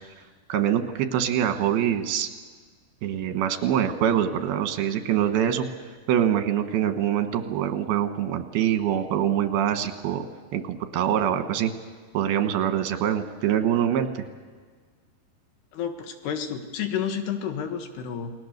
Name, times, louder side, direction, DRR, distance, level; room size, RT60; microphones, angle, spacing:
voice 1, 0.5-2.3 3.0-5.7 6.1-10.3 10.5-11.7 12.1-14.2, right 10 dB, 75° right, 7 dB, 3.2 m, -24 dB
voice 2, 15.7-18.3, left 8 dB, 85° left, 6 dB, 3.6 m, -30 dB
29.0 x 19.5 x 6.7 m, 1.5 s
omnidirectional pair, 4.6 m